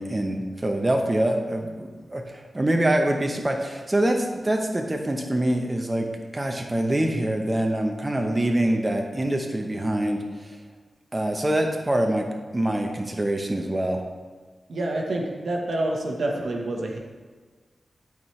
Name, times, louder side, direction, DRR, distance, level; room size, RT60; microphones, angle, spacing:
voice 1, 0.0-6.1 6.3-10.2 11.1-12.2 12.5-14.0, right 1 dB, 25° right, 3 dB, 0.9 m, -25 dB
voice 2, 14.7-17.0, right 1 dB, 75° right, 1 dB, 1.1 m, -27 dB
12.0 x 4.5 x 3.2 m, 1.4 s
cardioid pair, 55°, 0 cm